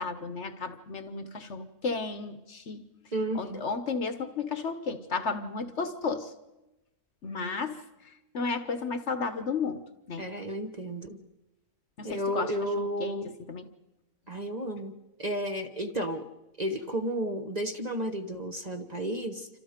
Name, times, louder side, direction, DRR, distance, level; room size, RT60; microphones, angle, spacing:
voice 1, 0.0-2.9 3.3-6.3 7.2-7.8 8.3-10.3 12.0-13.2 13.5-13.6, left 4 dB, 50° left, 10 dB, 1.2 m, -33 dB
voice 2, 3.1-3.6 10.2-11.2 12.0-13.3 14.3-14.9 15.2-16.3 16.6-19.5, equal, 30° right, 5 dB, 1.0 m, -32 dB
27.5 x 25.5 x 5.1 m, 1.0 s
omnidirectional pair, 1.6 m